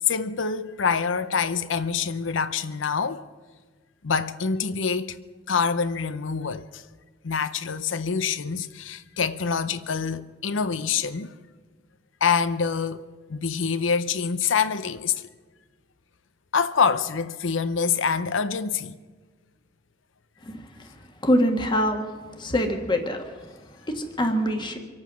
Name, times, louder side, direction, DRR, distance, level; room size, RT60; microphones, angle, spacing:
voice 1, 0.1-3.3 4.0-5.2 5.5-6.8 7.2-11.3 12.2-13.0 13.3-15.3 16.5-19.0, left 6 dB, 85° left, 0.7 m, -26 dB
voice 2, 21.2-22.1 22.4-23.2 24.0-24.8, equal, 25° left, 1.5 m, -23 dB
25.5 x 8.9 x 6.1 m
head